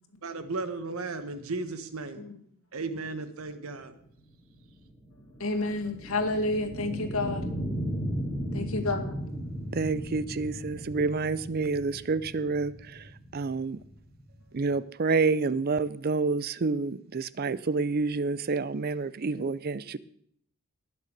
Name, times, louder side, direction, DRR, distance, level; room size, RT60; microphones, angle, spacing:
voice 1, 0.2-2.2 2.7-3.9, right 3 dB, 80° right, 10 dB, 1.3 m, -35 dB
sound 1, 4.0-14.7, equal, 15° left, 2.4 m, -36 dB
voice 2, 5.4-7.4 8.5-9.4, left 2 dB, 80° left, 4 dB, 2.1 m, -30 dB
voice 3, 9.7-13.8 14.5-20.0, right 4 dB, 45° right, 18 dB, 0.5 m, -28 dB
19.0 x 6.7 x 6.6 m, 0.67 s
head